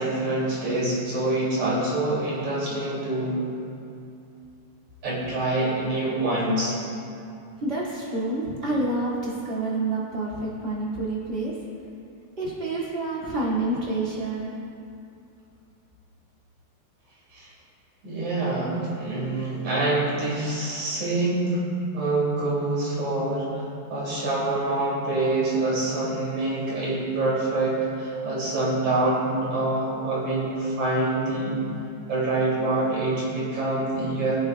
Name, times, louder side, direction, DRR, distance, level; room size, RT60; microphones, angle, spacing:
voice 1, 0.0-3.4 5.0-6.8 17.3-17.5 18.0-21.6 21.9-23.6 23.9-31.6 32.1-34.4, right 2 dB, 65° right, -7 dB, 4.2 m, -26 dB
voice 2, 7.6-11.6 12.4-14.5, right 2 dB, 20° right, -8 dB, 2.4 m, -28 dB
22.0 x 8.0 x 2.4 m, 2.6 s
omnidirectional pair, 3.5 m